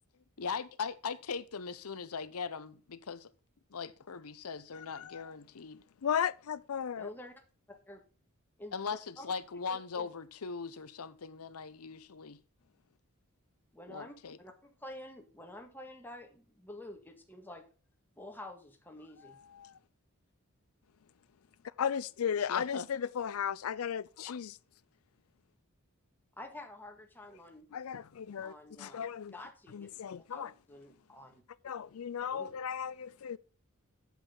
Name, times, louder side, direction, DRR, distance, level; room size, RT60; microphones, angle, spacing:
voice 1, 0.4-3.3 3.7-5.8 8.7-12.4 13.9-14.4 22.5-22.9, left 5 dB, 85° left, 0.8 m, -40 dB
voice 2, 4.7-5.3 6.0-7.1 19.2-19.7 21.6-24.6 27.7-28.5 28.8-29.4 29.7-30.5 31.6-33.4, left 8 dB, 70° left, 0.4 m, -35 dB
voice 3, 7.0-7.4 7.9-8.0 8.6-8.7 9.2-9.3 9.7-10.1 13.7-17.6 18.2-19.4 26.4-27.7 28.4-29.0 29.3-29.9 30.2-31.4 32.2-32.5, left 1 dB, 10° left, 1.8 m, -49 dB
8.3 x 7.7 x 3.9 m
head